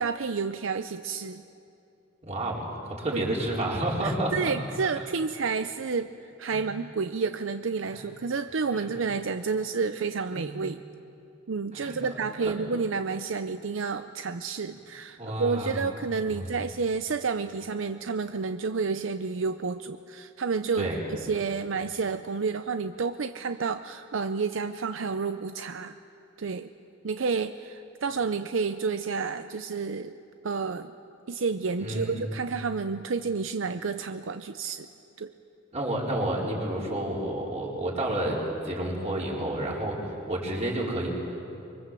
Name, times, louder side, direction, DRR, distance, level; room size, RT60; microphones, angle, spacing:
voice 1, 0.0-1.4 3.1-3.3 4.0-10.8 11.5-25.9 26.4-26.7 27.0-30.2 30.4-30.9 31.3-34.9 35.2-35.3, right 5 dB, 75° right, 9 dB, 0.6 m, -30 dB
voice 2, 2.3-2.7 3.0-4.3 6.5-6.6 7.8-8.0 8.7-8.9 10.3-10.4 11.7-12.0 12.4-12.5 15.2-15.8 16.3-16.5 20.7-21.0 31.8-32.2 35.7-41.1, right 1 dB, 35° right, -3 dB, 4.6 m, -30 dB
25.0 x 24.0 x 7.6 m, 2.7 s
head